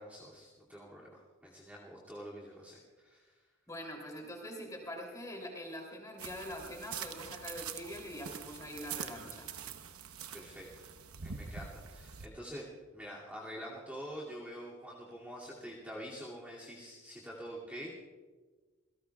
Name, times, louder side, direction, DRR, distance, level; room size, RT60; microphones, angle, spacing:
voice 1, 0.0-3.3 10.3-11.0 11.2-12.7 12.9-18.0, equal, 5° right, -6 dB, 2.4 m, -46 dB
voice 2, 3.7-9.5, equal, 15° left, 0 dB, 3.0 m, -44 dB
sound 1, 6.2-12.3, right 7 dB, 90° right, 0.9 m, -44 dB
27.5 x 17.5 x 2.4 m, 1.4 s
head